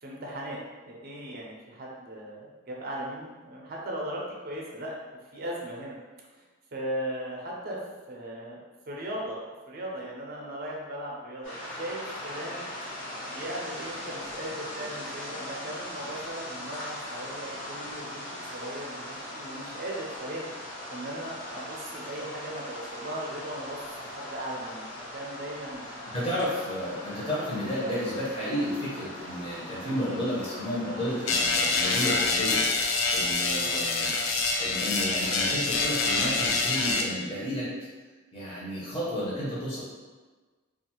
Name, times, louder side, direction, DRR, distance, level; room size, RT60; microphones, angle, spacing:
voice 1, 0.0-0.6 0.8-4.9 5.3-6.0 6.3-6.4 6.7-7.8 8.1-8.6 8.9-9.4 9.7-12.7 13.3-20.5 20.9-25.9 33.5-34.0, right 1 dB, 45° right, -3 dB, 0.5 m, -38 dB
sound 1, 11.4-31.3, left 1 dB, 60° left, 1.1 m, -40 dB
voice 2, 26.1-34.1 34.6-37.7 38.3-39.8, equal, 25° left, -8 dB, 0.7 m, -32 dB
sound 2, 31.3-37.0, left 3 dB, 75° left, 0.4 m, -26 dB
2.5 x 2.3 x 2.9 m, 1.3 s
head